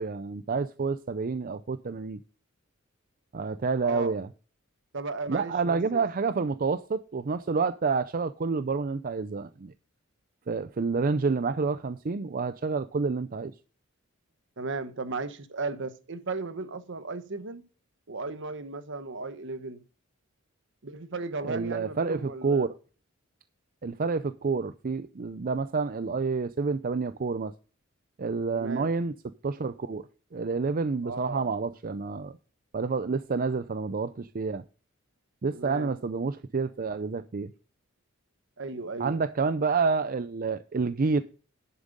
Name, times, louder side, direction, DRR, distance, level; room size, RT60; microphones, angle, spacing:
voice 1, 0.0-2.2 3.3-4.3 5.3-9.7 10.5-13.5 21.4-22.7 23.8-27.5 28.2-29.1 29.4-30.1 30.3-32.4 32.7-34.6 35.4-37.5 39.0-41.2, right 4 dB, 45° right, 0.5 m, -28 dB
voice 2, 3.8-4.1 4.9-6.0 14.6-17.7 18.1-19.8 20.8-22.7 28.5-28.9 31.0-31.5 35.5-36.0 38.6-39.2, right 3 dB, 60° right, 1.1 m, -36 dB
11.0 x 7.3 x 5.2 m
head